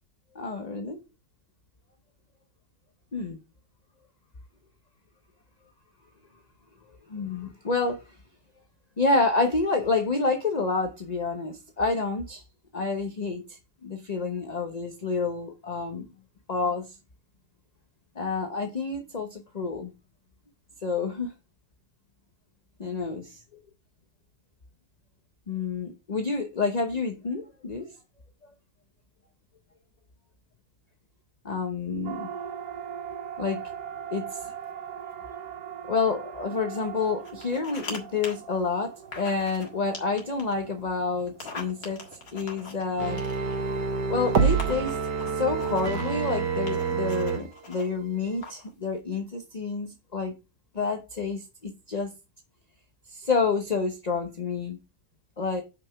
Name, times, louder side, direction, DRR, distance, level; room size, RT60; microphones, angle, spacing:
voice 1, 0.3-1.0 3.1-3.4 7.1-8.0 9.0-12.4 12.7-16.1 16.5-17.0 18.2-19.9 20.8-21.3 22.8-23.4 25.5-27.9 31.4-32.3 33.4-33.6 34.1-34.5 35.9-42.0 42.3-43.2 44.1-45.0 45.3-50.3 50.7-52.1 53.1-54.8 55.4-55.6, left 4 dB, 30° left, 0.8 m, -28 dB
Siren, 32.0-46.4, right 8 dB, 75° right, 1.5 m, -42 dB
sound 1, 37.2-38.0 38.2-38.3 39.1-39.7 39.9-40.5 41.3-43.6 44.3-44.4 44.6-46.2 46.7-47.9 48.4-48.7, left 4 dB, 60° left, 2.3 m, -41 dB
sound 2, 43.0-47.4 47.8-47.9, right 6 dB, 90° right, 1.9 m, -27 dB
5.9 x 5.5 x 5.8 m
omnidirectional pair, 1.8 m